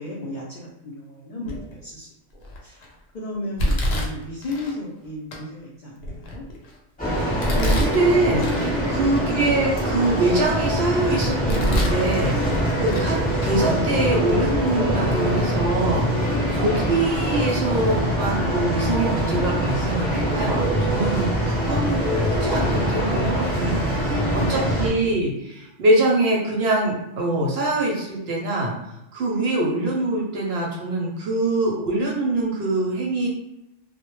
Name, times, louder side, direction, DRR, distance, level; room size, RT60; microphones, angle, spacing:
voice 1, 0.0-2.1 2.6-6.4, left 1 dB, 80° left, -4 dB, 0.4 m, -35 dB
Domestic sounds home sounds, 1.5-1.8 2.4-2.8 3.6-4.7 5.3-5.4 6.0-6.8 7.4-8.7 9.1-9.2 9.8-10.8 11.2-12.0 12.4-13.1 13.4-13.5 14.3-14.4 15.1-15.2 15.6-15.7, equal, 65° left, 0.8 m, -27 dB
sound 1, 7.0-24.9, equal, 10° left, 0.8 m, -23 dB
voice 2, 7.5-13.2 13.4-21.3 21.6-28.7 29.1-33.3, right 2 dB, 65° right, -2 dB, 0.7 m, -24 dB
2.1 x 2.0 x 3.0 m, 0.88 s
omnidirectional pair, 1.3 m